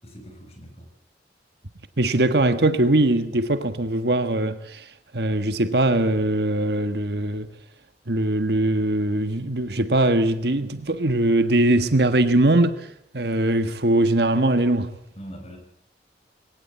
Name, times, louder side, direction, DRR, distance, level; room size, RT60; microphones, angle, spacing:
voice 1, 0.0-0.9 15.1-15.6, equal, 35° left, 6.4 m, -41 dB
voice 2, 2.0-7.5 8.1-14.9, right 1 dB, 65° right, 1.5 m, -21 dB
21.0 x 18.5 x 8.4 m
head